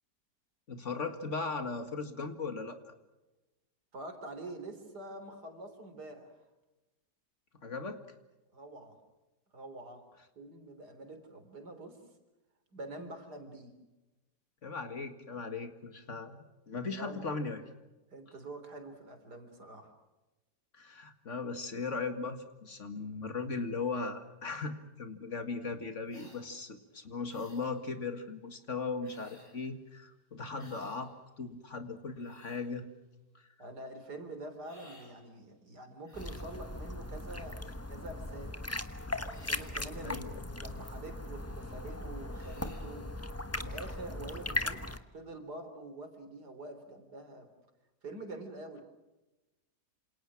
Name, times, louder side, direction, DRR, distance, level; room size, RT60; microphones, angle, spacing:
voice 1, 0.7-2.8 7.6-8.0 14.6-17.6 20.7-31.1 31.4-32.9 33.3-33.5 40.0-40.3, left 4 dB, 45° left, 8 dB, 2.3 m, -38 dB
voice 2, 3.9-6.4 8.5-9.0 9.5-10.1 10.4-12.0 12.7-13.7 17.0-17.4 18.1-19.9 33.6-38.6 39.3-43.2 43.5-44.8 45.1-47.5 48.0-48.8, right 2 dB, 80° right, 7 dB, 4.2 m, -46 dB
sound 1, 26.1-26.5 27.3-27.7 29.0-29.6 30.6-31.0 32.0-32.6 34.6-35.1 36.0-36.6 39.2-39.9 42.3-42.9, equal, 30° left, 6.5 m, -58 dB
sound 2, 36.1-45.0, left 1 dB, 10° left, 1.0 m, -39 dB
27.5 x 27.5 x 6.3 m, 1.1 s
omnidirectional pair, 1.7 m